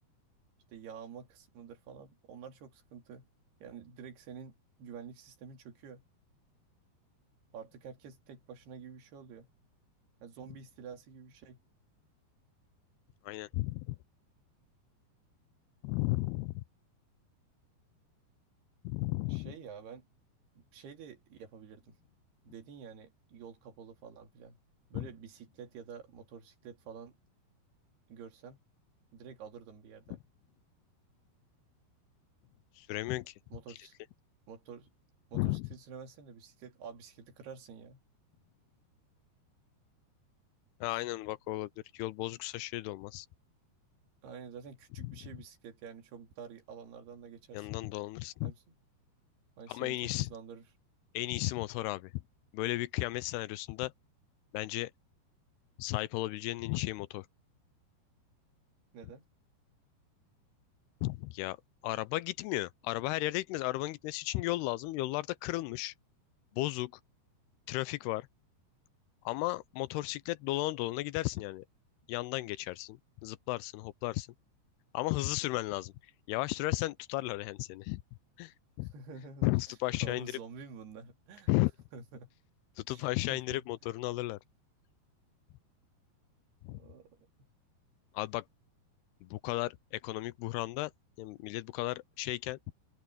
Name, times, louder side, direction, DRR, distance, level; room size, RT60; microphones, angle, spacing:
voice 1, 0.7-3.3 3.6-6.0 7.5-9.5 10.2-11.6 19.3-20.0 20.6-22.0 22.4-24.6 24.9-27.1 28.1-28.6 29.1-30.2 33.5-33.9 34.5-34.9 35.3-38.0 44.2-47.8 48.4-48.6 49.6-50.7 58.9-59.2 78.9-79.5 80.0-81.5 81.9-82.3 82.9-83.0 83.3-83.6 86.7-87.2, right 6 dB, 65° right, 4.5 m, -49 dB
voice 2, 13.2-14.0 15.8-16.6 18.8-19.5 24.9-25.1 32.8-33.3 35.3-35.7 40.8-43.3 45.0-45.2 47.5-48.5 49.7-50.3 51.1-52.2 52.5-53.9 54.5-54.9 55.8-57.3 61.0-61.6 61.8-65.9 66.5-66.9 67.7-68.3 69.3-71.7 72.1-74.3 74.9-75.9 76.3-78.0 78.4-78.9 79.4-80.3 81.5-81.7 82.8-84.4 86.6-86.8 88.1-88.5 89.2-90.9 91.2-92.6, left 19 dB, 80° left, 2.4 m, -34 dB
open air
omnidirectional pair, 5.0 m